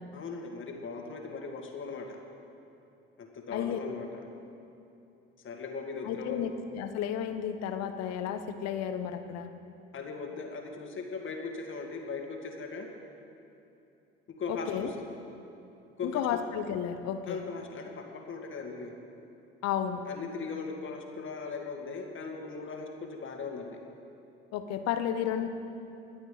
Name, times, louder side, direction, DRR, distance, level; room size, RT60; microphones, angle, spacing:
voice 1, 0.1-2.2 3.2-4.1 5.4-6.4 9.9-12.9 14.4-14.9 16.0-16.2 17.3-18.9 20.1-23.8, left 4 dB, 40° left, 2 dB, 2.2 m, -38 dB
voice 2, 6.0-9.5 14.5-14.9 16.0-17.4 19.6-20.0 24.5-25.5, left 9 dB, 60° left, 9 dB, 1.1 m, -32 dB
22.0 x 8.7 x 5.1 m, 2.8 s
hypercardioid pair, 65°, 30 cm